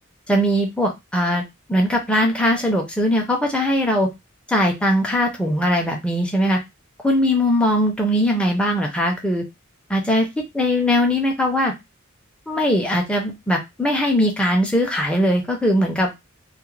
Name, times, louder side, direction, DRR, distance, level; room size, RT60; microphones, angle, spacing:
voice 1, 0.3-1.4 1.7-4.1 4.5-6.6 7.0-9.4 9.9-10.3 10.5-11.7 12.5-16.1, equal, 5° left, 0 dB, 0.4 m, -20 dB
2.3 x 2.1 x 3.1 m, 0.21 s
head